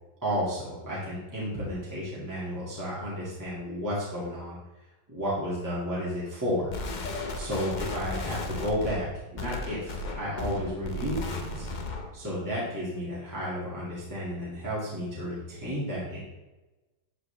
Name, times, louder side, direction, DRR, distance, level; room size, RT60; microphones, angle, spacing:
voice 1, 0.2-4.6 5.1-6.7 7.3-11.7 12.1-16.2, equal, 10° right, -8 dB, 2.2 m, -32 dB
sound 1, 6.7-12.2, left 2 dB, 65° left, 0.4 m, -35 dB
11.5 x 4.9 x 3.4 m, 1.1 s
omnidirectional pair, 2.0 m